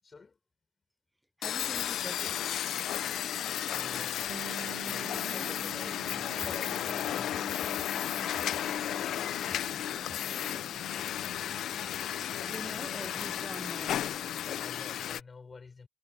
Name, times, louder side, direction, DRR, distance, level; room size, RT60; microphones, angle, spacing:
voice 1, 0.0-0.4 2.9-7.7 14.4-15.9, left 4 dB, 35° left, 5.8 m, -51 dB
sound 1, 1.4-15.2, left 11 dB, 75° left, 0.6 m, -34 dB
voice 2, 1.4-2.4 5.2-5.6 12.4-14.1, right 1 dB, 5° right, 0.5 m, -44 dB
Bass guitar, 4.3-13.9, right 11 dB, 70° right, 0.6 m, -51 dB
cardioid pair, 90°, 0 cm